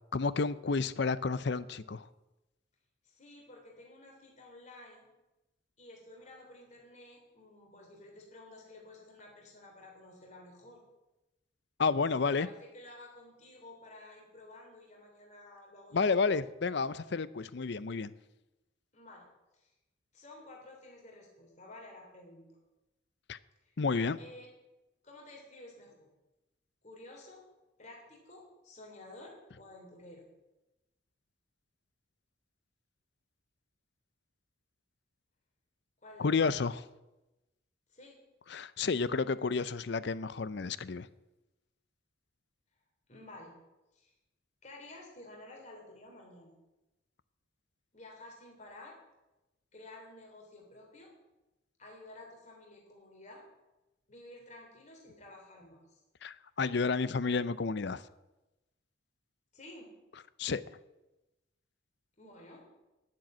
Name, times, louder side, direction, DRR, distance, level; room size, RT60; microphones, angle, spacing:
voice 1, 0.1-2.1 11.8-12.5 15.9-18.1 23.3-23.4 23.8-24.2 36.2-36.8 38.5-41.1 56.2-58.0 60.4-60.6, left 4 dB, 55° left, 16 dB, 0.5 m, -31 dB
voice 2, 3.0-5.1 5.8-10.8 12.1-16.1 18.9-19.3 19.5-19.7 20.1-22.5 23.6-23.7 24.2-24.5 25.0-26.1 26.8-27.4 27.8-30.3 36.0-36.6 37.9-38.2 43.1-43.5 43.9-44.1 44.6-46.5 47.9-49.0 49.7-51.1 51.8-53.4 54.1-56.0 59.5-59.9 62.2-62.6, left 2 dB, 35° left, 0 dB, 3.3 m, -52 dB
11.5 x 7.7 x 9.3 m, 1.0 s
head